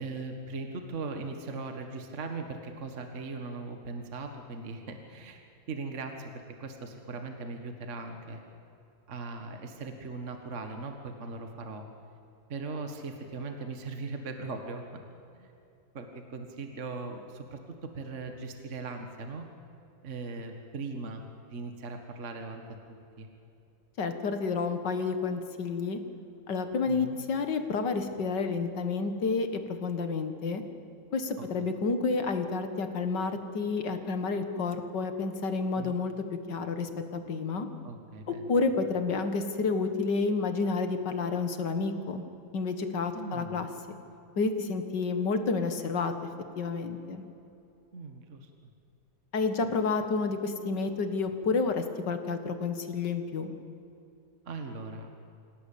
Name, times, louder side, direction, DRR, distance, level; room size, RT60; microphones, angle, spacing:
voice 1, 0.0-6.3 6.6-8.4 9.1-11.8 12.5-15.0 15.3-15.5 15.9-19.5 20.0-21.2 21.5-22.6 22.9-23.3 26.9-27.2 35.8-36.0 37.8-38.5 43.1-43.6 47.9-48.5 54.5-55.1, right 3 dB, 40° right, 5 dB, 1.8 m, -39 dB
voice 2, 24.0-26.0 26.5-30.6 31.1-37.7 38.3-42.2 42.5-43.7 44.4-46.1 46.6-47.2 49.3-53.5, left 4 dB, 60° left, 8 dB, 2.3 m, -30 dB
27.0 x 17.5 x 8.6 m, 2.7 s
omnidirectional pair, 2.2 m